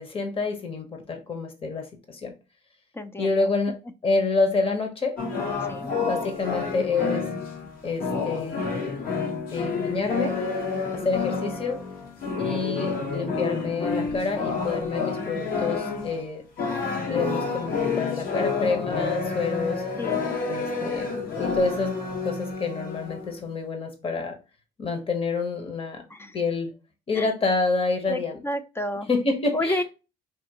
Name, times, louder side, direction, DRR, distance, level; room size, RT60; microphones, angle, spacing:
voice 1, 0.0-2.3 3.2-3.8 4.0-5.2 6.0-7.3 7.8-8.7 9.5-10.4 10.9-11.8 12.4-16.4 17.1-19.8 20.5-21.1 21.4-22.0 22.2-24.4 24.8-26.0 26.3-26.7 27.1-28.4 29.1-29.8, left 3 dB, 35° left, 1.1 m, -28 dB
voice 2, 2.9-3.3 5.7-5.9 10.8-10.9 20.0-20.2 26.1-26.4 27.1-27.3 28.1-29.1 29.5-29.8, left 1 dB, 15° left, 0.4 m, -30 dB
sound 1, 5.2-16.2 16.6-23.4, left 4 dB, 60° left, 1.3 m, -29 dB
4.4 x 2.9 x 2.9 m
cardioid pair, 110°, 17 cm